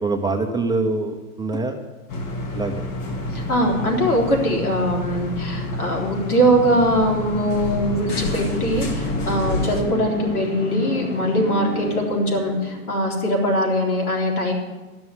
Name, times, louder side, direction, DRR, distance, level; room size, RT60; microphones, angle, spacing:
voice 1, 0.0-1.8 2.5-2.9, right 3 dB, 10° right, 3 dB, 0.7 m, -24 dB
sound 1, 2.1-9.8, left 2 dB, 40° left, 2.1 m, -28 dB
voice 2, 3.3-14.5, equal, 75° left, 0 dB, 3.6 m, -21 dB
sound 2, 6.4-13.1, left 1 dB, 20° left, 1.9 m, -32 dB
12.5 x 6.2 x 9.5 m, 1.2 s
hypercardioid pair, 110°, 45 cm